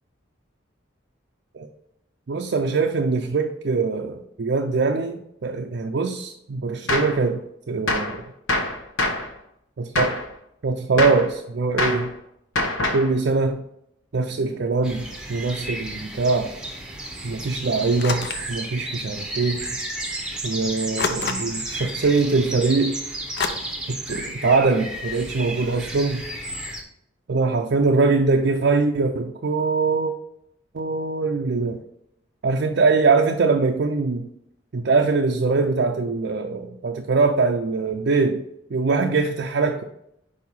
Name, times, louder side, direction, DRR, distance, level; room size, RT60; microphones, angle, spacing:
voice 1, 2.3-8.2 10.0-10.2 10.6-12.1 12.9-13.6 14.1-16.5 17.2-19.8 20.4-23.0 23.9-26.2 27.3-30.1 30.7-31.8 32.4-34.3 34.7-38.4 38.7-39.8, right 4 dB, 60° right, 3 dB, 0.4 m, -22 dB
Gunshot gunfire, 6.9-7.2 7.9-8.2 8.5-9.3 10.0-10.3 11.0-11.3 11.8-12.1 12.6-13.1, left 1 dB, 80° left, 1.0 m, -24 dB
sound 1, 14.8-26.8, right 1 dB, 5° right, 0.8 m, -33 dB
sound 2, 18.0-18.5 19.6-19.7 21.0-21.7 23.4-23.5, left 5 dB, 55° left, 0.5 m, -27 dB
4.9 x 4.7 x 5.4 m, 0.78 s
head